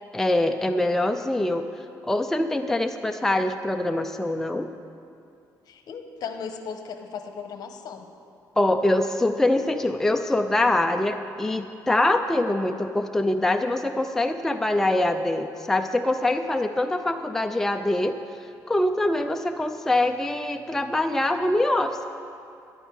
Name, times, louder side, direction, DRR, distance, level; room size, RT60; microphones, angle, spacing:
voice 1, 0.1-1.6 2.0-4.7 8.6-18.2 18.7-22.1, left 1 dB, 5° left, 6 dB, 0.4 m, -24 dB
voice 2, 5.7-8.1, left 6 dB, 60° left, 6 dB, 1.0 m, -36 dB
12.5 x 11.5 x 4.7 m, 2.5 s
cardioid pair, 125°, 7 cm